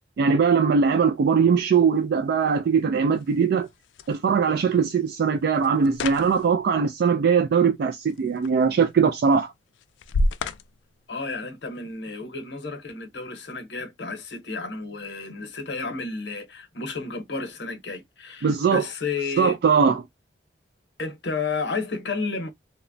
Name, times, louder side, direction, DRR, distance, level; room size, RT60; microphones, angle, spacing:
voice 1, 0.2-3.7 4.1-9.5 18.4-18.8 19.4-20.0, right 6 dB, 60° right, 0.3 m, -21 dB
sound 1, 1.0-12.0, left 2 dB, 85° left, 0.3 m, -35 dB
voice 2, 11.1-19.6 21.0-22.5, left 4 dB, 65° left, 0.8 m, -32 dB
2.8 x 2.1 x 2.5 m
head